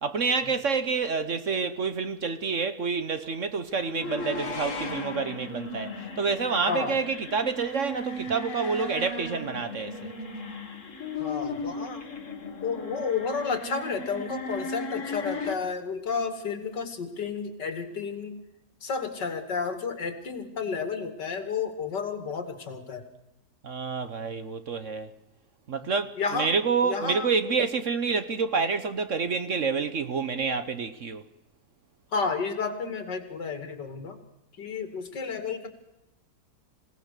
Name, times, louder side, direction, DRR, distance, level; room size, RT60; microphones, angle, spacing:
voice 1, 0.0-10.1 23.6-25.1 25.7-31.2, right 5 dB, 50° right, 1.2 m, -28 dB
sound 1, 3.8-15.5, left 2 dB, 45° left, 2.2 m, -36 dB
voice 2, 6.7-7.0 11.2-12.0 12.6-18.4 18.8-23.1 26.2-26.5 26.8-27.3 32.1-34.2 34.6-35.7, left 5 dB, 75° left, 2.8 m, -31 dB
26.5 x 17.5 x 6.7 m
omnidirectional pair, 1.9 m